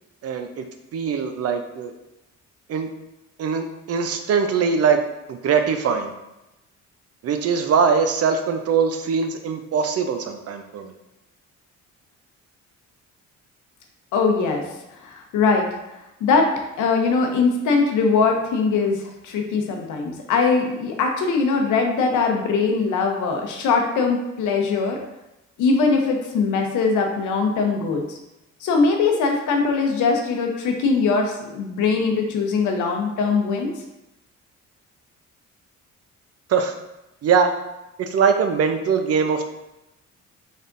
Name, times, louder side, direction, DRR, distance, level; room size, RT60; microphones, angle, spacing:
voice 1, 0.2-0.6 0.9-1.9 2.7-2.9 3.4-5.0 5.3-6.1 7.2-10.9 36.5-36.7 37.2-37.5 38.0-39.5, right 6 dB, 55° right, 7 dB, 0.5 m, -21 dB
voice 2, 14.1-14.6 15.0-15.7 16.2-16.5 16.8-25.0 25.6-28.2 28.6-33.7, left 4 dB, 80° left, 2 dB, 0.8 m, -21 dB
4.1 x 3.4 x 2.5 m, 0.93 s
cardioid pair, 90°, 30 cm